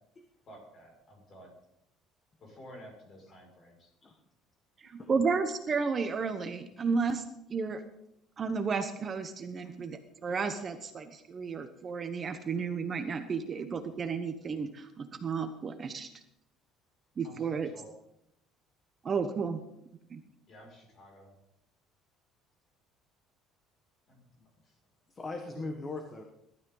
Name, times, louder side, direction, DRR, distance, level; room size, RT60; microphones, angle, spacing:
voice 1, 0.5-1.5 2.4-3.9 17.2-17.9 20.5-21.3 24.1-24.7, equal, 35° left, 0 dB, 6.0 m, -52 dB
voice 2, 5.1-7.2 7.5-7.8 8.4-16.1 17.2-17.7 19.0-19.6 20.1-20.2, right 5 dB, 25° right, 8 dB, 1.0 m, -32 dB
voice 3, 25.1-26.2, left 3 dB, 20° left, 4 dB, 1.5 m, -39 dB
21.5 x 12.5 x 3.9 m, 0.79 s
cardioid pair, 155°, 0 cm